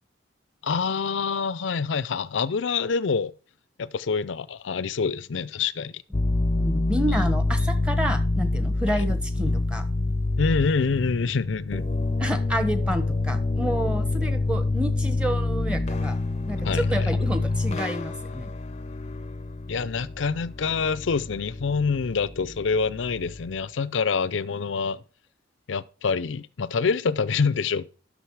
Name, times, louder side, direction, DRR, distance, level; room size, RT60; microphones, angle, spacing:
voice 1, 0.6-3.3 3.8-6.0 8.9-9.0 10.4-11.9 16.6-17.1 19.7-25.0 25.7-27.9, left 5 dB, 80° left, 0.5 m, -26 dB
sound 1, 6.1-23.5, left 2 dB, 35° left, 0.6 m, -27 dB
voice 2, 6.5-9.8 12.2-16.2 16.5-18.5, equal, 5° right, 1.2 m, -29 dB
11.5 x 6.4 x 4.7 m
head